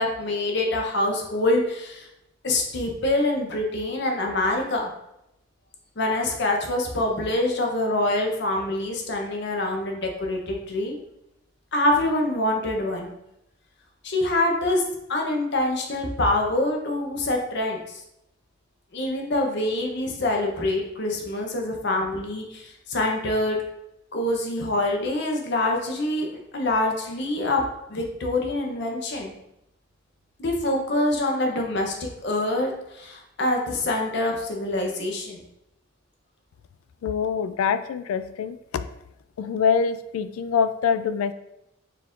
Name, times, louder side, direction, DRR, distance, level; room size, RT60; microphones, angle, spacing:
voice 1, 0.0-2.1 2.4-4.9 6.0-11.0 11.7-13.1 14.0-14.8 15.1-18.0 18.9-23.6 24.1-27.6 27.9-29.3 30.4-35.4, left 1 dB, 55° left, 1 dB, 0.7 m, -25 dB
voice 2, 37.0-38.9 39.4-41.3, left 6 dB, 85° left, 13 dB, 0.3 m, -24 dB
4.5 x 2.5 x 3.6 m, 0.85 s
head